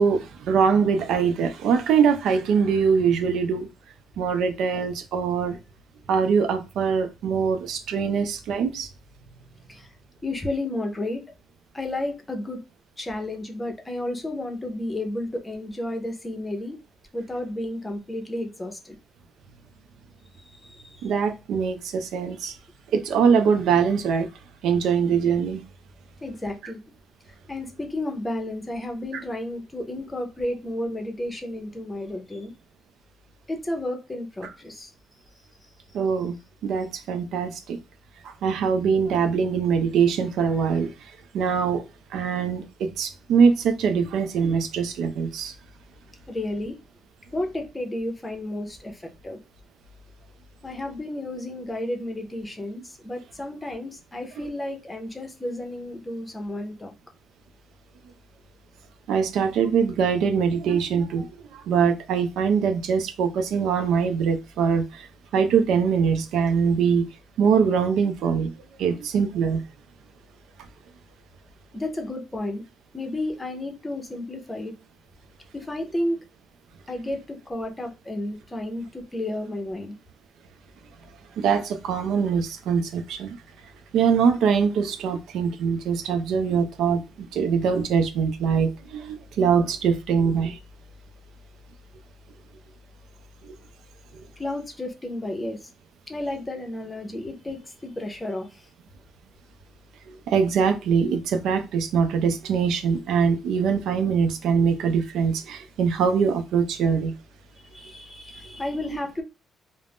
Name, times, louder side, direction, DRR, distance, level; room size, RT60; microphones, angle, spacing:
voice 1, 0.0-3.7 4.2-5.6 6.1-8.9 21.0-22.5 22.9-24.3 24.6-25.7 29.1-29.2 35.9-36.4 36.6-37.8 38.2-40.9 41.3-41.8 42.1-45.5 59.1-65.1 65.3-67.0 67.4-68.5 68.8-69.6 81.4-83.4 83.9-87.0 87.3-90.6 100.1-107.1, right 6 dB, 80° right, 0.4 m, -23 dB
voice 2, 10.2-11.2 11.7-12.6 13.0-16.8 17.1-19.0 20.5-21.1 26.2-26.8 27.3-32.5 33.5-34.9 46.3-46.8 47.3-49.4 50.6-56.9 71.7-72.6 72.9-74.7 75.5-76.2 76.9-79.9 94.4-95.7 96.1-98.7 107.6-109.2, left 1 dB, 15° left, 0.7 m, -32 dB
2.4 x 2.0 x 3.4 m
cardioid pair, 90°, 0 cm